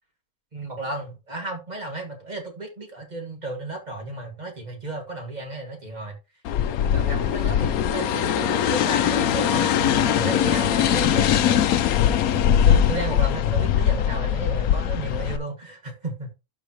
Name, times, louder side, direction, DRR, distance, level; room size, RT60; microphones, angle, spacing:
voice 1, 0.5-6.2 6.8-11.7 12.3-16.3, right 2 dB, 25° right, 2.3 m, -33 dB
sound 1, 6.4-15.4, left 9 dB, 70° left, 1.1 m, -21 dB
12.0 x 4.9 x 3.0 m
omnidirectional pair, 1.6 m